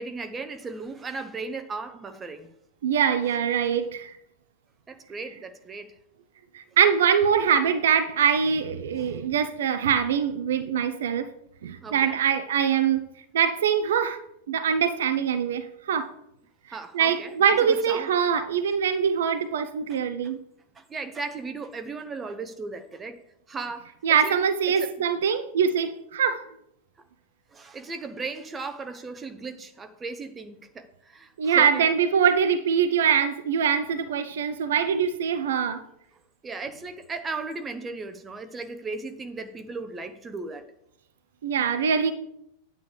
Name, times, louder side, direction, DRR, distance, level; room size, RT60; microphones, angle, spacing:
voice 1, 0.0-2.5 4.9-5.9 9.0-9.2 11.8-12.2 16.7-18.1 20.2-20.3 20.7-23.2 23.5-24.4 24.7-24.9 27.5-31.9 36.4-40.7, right 4 dB, 20° right, 0.8 m, -36 dB
voice 2, 2.8-4.1 6.5-11.3 11.6-13.0 13.3-14.2 14.5-16.1 16.9-20.4 24.0-26.4 31.4-35.8 41.4-42.1, right 7 dB, 60° right, 0.5 m, -23 dB
9.3 x 8.2 x 3.3 m
figure-of-eight pair, 90°, 0 cm